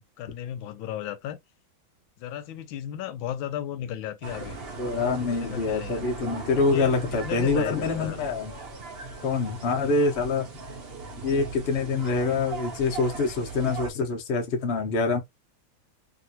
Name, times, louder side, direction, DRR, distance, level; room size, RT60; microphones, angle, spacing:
voice 1, 0.0-1.4 2.2-4.6 4.8-6.0 6.5-8.2 9.6-9.9, left 10 dB, 85° left, 1.4 m, -36 dB
sound 1, 4.2-13.9, right 4 dB, 65° right, 0.5 m, -39 dB
voice 2, 4.8-8.5 9.2-10.5 11.2-15.2, left 4 dB, 45° left, 0.8 m, -25 dB
2.9 x 2.9 x 2.8 m
omnidirectional pair, 2.1 m